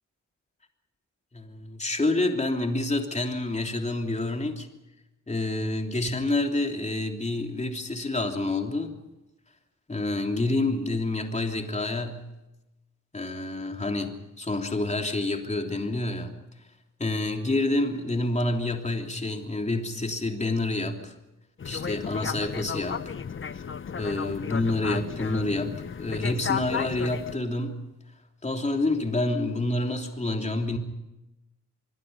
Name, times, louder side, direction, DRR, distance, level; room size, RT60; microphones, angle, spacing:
voice 1, 1.3-4.7 5.3-8.9 9.9-12.3 13.1-16.3 17.0-21.1 21.6-23.1 23.5-23.6 23.9-27.8 28.4-30.8, left 2 dB, 20° left, 3 dB, 3.3 m, -28 dB
sound 1, 21.6-27.4, left 7 dB, 40° left, 0.8 m, -34 dB
26.5 x 21.5 x 5.6 m, 0.97 s
wide cardioid pair, 115°, 31 cm